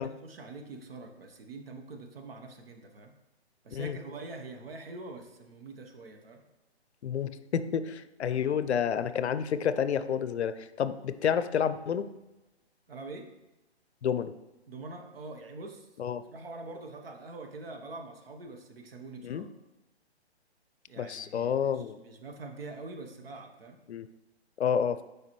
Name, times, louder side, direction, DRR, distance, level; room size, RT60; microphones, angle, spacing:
voice 1, 0.0-3.1 3.6-6.4 8.3-8.6 12.9-13.3 14.7-15.9 16.3-19.5 20.9-23.8, right 3 dB, 60° right, 4 dB, 1.0 m, -44 dB
voice 2, 7.0-12.1 14.0-14.3 16.0-16.2 19.2-19.5 21.0-22.0 23.9-24.1 24.6-25.0, left 8 dB, 75° left, 13 dB, 0.5 m, -29 dB
7.1 x 4.8 x 3.1 m, 1.0 s
hypercardioid pair, 145°, 33 cm